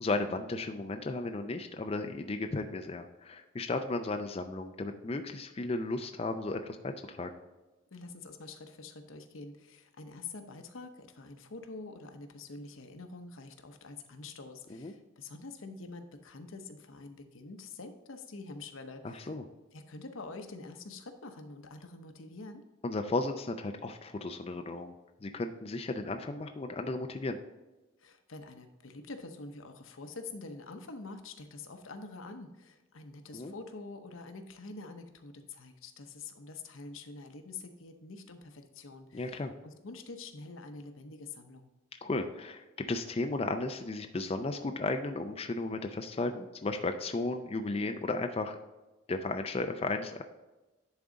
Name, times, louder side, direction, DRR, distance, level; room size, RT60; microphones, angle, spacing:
voice 1, 0.0-7.3 14.7-14.9 19.0-19.4 22.8-24.9 25.2-27.4 33.3-33.5 39.1-39.5 42.0-48.6 49.1-50.2, left 2 dB, 30° left, 6 dB, 0.4 m, -34 dB
voice 2, 7.9-19.3 19.7-22.6 28.0-41.7, left 3 dB, 80° left, 6 dB, 0.9 m, -46 dB
10.5 x 3.7 x 3.9 m, 1.1 s
head